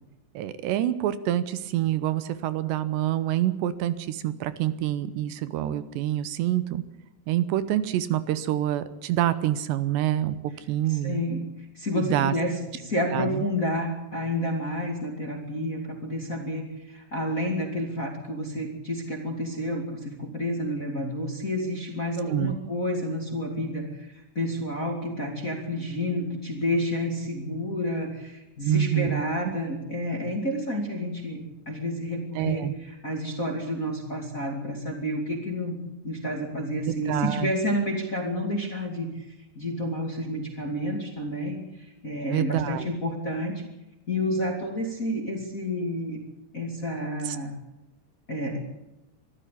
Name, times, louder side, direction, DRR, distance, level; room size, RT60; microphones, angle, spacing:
voice 1, 0.3-6.8 7.3-10.4 10.7-11.2 11.9-12.3 13.1-13.3 22.3-22.6 28.6-29.5 32.4-32.7 36.9-37.5 42.3-42.9 47.3-47.4, right 13 dB, 80° right, 14 dB, 3.1 m, -26 dB
voice 2, 10.9-35.8 36.0-43.6 44.1-46.2 46.5-47.5 48.3-48.6, left 1 dB, 25° left, 3 dB, 2.1 m, -30 dB
23.5 x 13.5 x 8.4 m, 0.91 s
omnidirectional pair, 5.1 m